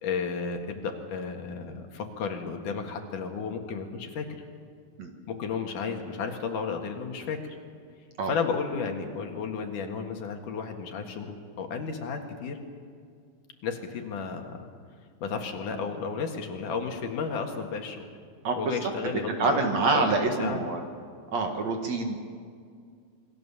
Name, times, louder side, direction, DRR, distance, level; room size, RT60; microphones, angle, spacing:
voice 1, 0.0-4.4 5.3-7.6 8.3-12.6 13.6-14.6 15.2-18.1 18.6-20.6, left 5 dB, 65° left, 4 dB, 3.2 m, -33 dB
voice 2, 19.4-20.8 21.3-22.2, right 3 dB, 55° right, 4 dB, 2.7 m, -26 dB
27.5 x 21.5 x 7.1 m, 2.2 s
omnidirectional pair, 4.2 m